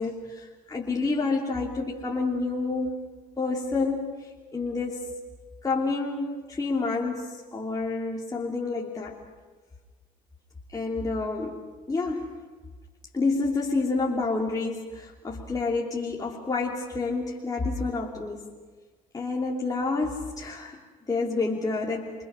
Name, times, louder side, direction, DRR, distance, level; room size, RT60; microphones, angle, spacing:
voice 1, 0.0-3.0 3.4-4.0 4.5-5.2 5.6-9.2 10.7-12.4 13.1-18.5 19.1-20.8 21.1-22.1, left 3 dB, 20° left, -2 dB, 3.0 m, -29 dB
28.0 x 23.0 x 6.3 m, 1.4 s
hypercardioid pair, 65°, 18 cm